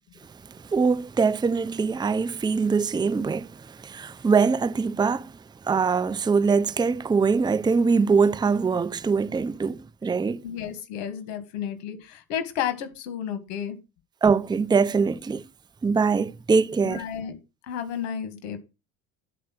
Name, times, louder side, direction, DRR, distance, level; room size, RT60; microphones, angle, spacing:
voice 1, 0.7-5.3 5.6-10.4 14.2-15.4 15.8-17.0, right 5 dB, 10° right, 0.6 m, -23 dB
voice 2, 10.4-13.8 16.8-17.4 17.7-18.6, left 9 dB, 85° left, 2.2 m, -32 dB
11.0 x 4.5 x 6.0 m
supercardioid pair, 90°, 35 cm